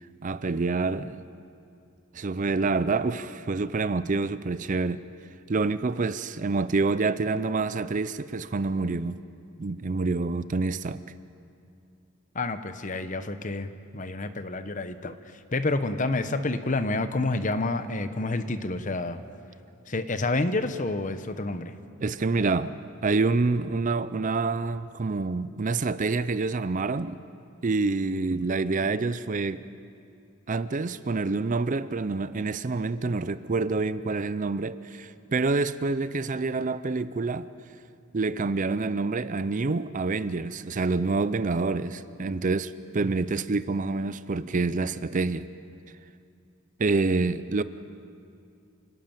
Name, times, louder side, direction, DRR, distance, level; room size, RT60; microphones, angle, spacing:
voice 1, 0.2-1.3 2.1-5.0 5.5-9.2 9.6-11.0 22.0-22.8 23.0-27.2 27.6-29.6 30.5-37.5 38.1-45.5 46.8-47.6, right 3 dB, 35° right, 0.5 m, -27 dB
voice 2, 12.3-19.2 19.9-21.7, left 2 dB, 35° left, 0.9 m, -29 dB
27.5 x 13.0 x 9.1 m
head